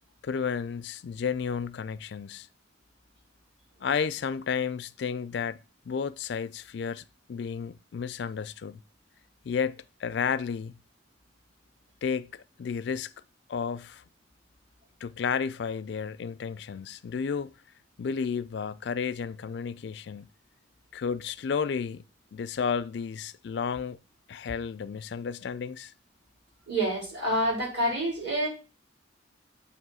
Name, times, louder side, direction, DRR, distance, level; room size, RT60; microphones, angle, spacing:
voice 1, 0.2-2.5 3.8-5.6 5.9-8.8 9.4-10.8 12.0-13.1 13.5-14.0 15.0-17.5 18.0-20.3 20.9-22.0 22.3-24.0 24.3-25.9, left 6 dB, 60° left, 0.4 m, -32 dB
voice 2, 26.7-28.5, right 1 dB, 60° right, 4.2 m, -27 dB
8.0 x 3.0 x 6.1 m
head